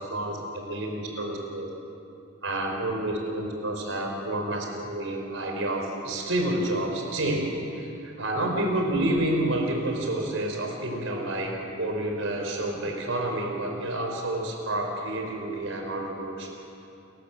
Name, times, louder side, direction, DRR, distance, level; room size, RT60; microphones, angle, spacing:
voice 1, 0.0-1.7 2.4-16.5, right 1 dB, 80° right, 1 dB, 4.9 m, -29 dB
30.0 x 14.0 x 7.9 m, 2.8 s
head